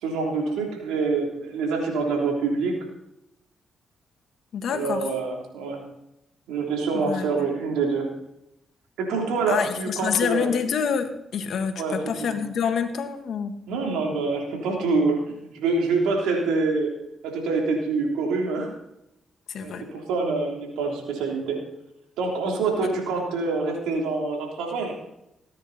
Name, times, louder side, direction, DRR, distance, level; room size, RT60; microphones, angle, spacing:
voice 1, 0.0-2.8 4.7-5.9 6.5-8.1 9.0-10.5 11.8-12.0 12.3-12.4 13.7-16.9 17.2-18.7 19.6-21.6 22.2-24.9, right 4 dB, 85° right, 0 dB, 3.3 m, -26 dB
voice 2, 4.5-5.1 6.9-7.3 9.5-13.5 19.5-19.8 22.8-22.9, left 7 dB, 70° left, 7 dB, 1.7 m, -27 dB
18.5 x 9.7 x 4.2 m, 0.85 s
supercardioid pair, 55°, 0 cm